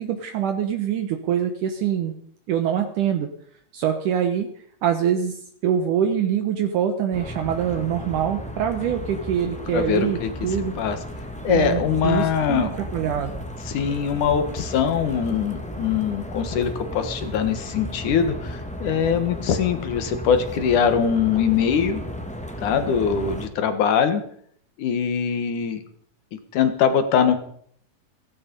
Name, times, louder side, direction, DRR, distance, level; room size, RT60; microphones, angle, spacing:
voice 1, 0.0-2.1 2.5-3.3 3.7-4.5 4.8-10.7 11.5-13.4, right 9 dB, 70° right, 6 dB, 2.5 m, -24 dB
sound 1, 7.1-23.5, equal, 5° left, 0.9 m, -34 dB
voice 2, 9.7-10.3 10.8-11.0 11.4-12.7 13.7-22.0 22.6-24.2 24.8-25.8 26.5-27.4, left 7 dB, 65° left, 9 dB, 2.8 m, -22 dB
16.5 x 16.0 x 5.4 m, 0.62 s
omnidirectional pair, 4.0 m